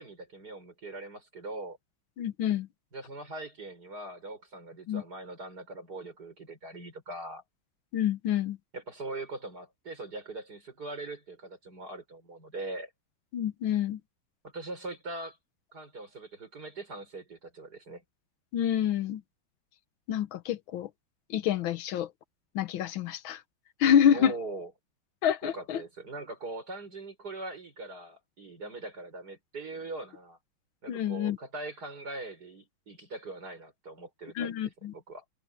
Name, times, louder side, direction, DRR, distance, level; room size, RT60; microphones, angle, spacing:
voice 1, 0.0-1.8 2.9-7.4 8.7-12.9 14.4-15.4 15.7-18.0 24.1-24.7 25.4-30.4 30.8-35.2, right 2 dB, 50° right, 6.1 m, -41 dB
voice 2, 2.2-2.7 4.9-5.0 7.9-8.6 13.3-14.0 18.5-19.2 20.1-20.9 21.3-22.1 22.5-23.4 23.8-24.3 25.2-25.8 30.9-31.4 34.4-34.9, left 9 dB, 80° left, 1.7 m, -27 dB
omnidirectional pair, 2.2 m